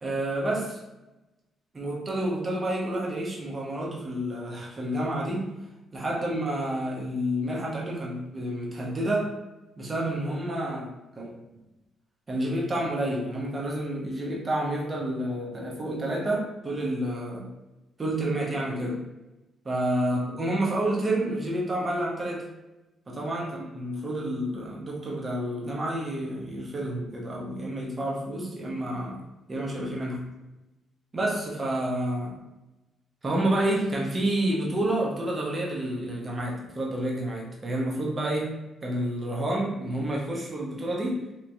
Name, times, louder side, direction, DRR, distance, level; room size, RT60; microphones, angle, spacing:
voice 1, 0.0-0.8 1.7-5.5 5.9-9.3 9.8-11.4 12.3-17.5 18.0-19.0 19.6-22.5 23.1-29.2 29.5-30.3 31.1-32.4 33.2-41.2, right 1 dB, 30° right, -2 dB, 0.8 m, -29 dB
3.0 x 2.9 x 2.6 m, 1.0 s
cardioid pair, 90°, 0 cm